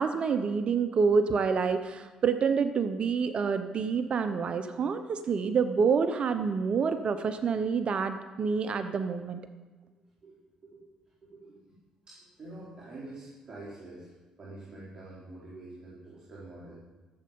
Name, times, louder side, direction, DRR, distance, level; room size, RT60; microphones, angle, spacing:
voice 1, 0.0-9.4, right 5 dB, 50° right, 9 dB, 0.7 m, -27 dB
voice 2, 9.9-11.0 11.2-11.8 12.1-14.1 14.4-16.8, right 2 dB, 35° right, -7 dB, 4.2 m, -47 dB
14.5 x 7.7 x 5.4 m, 1.2 s
supercardioid pair, 65°, 2 cm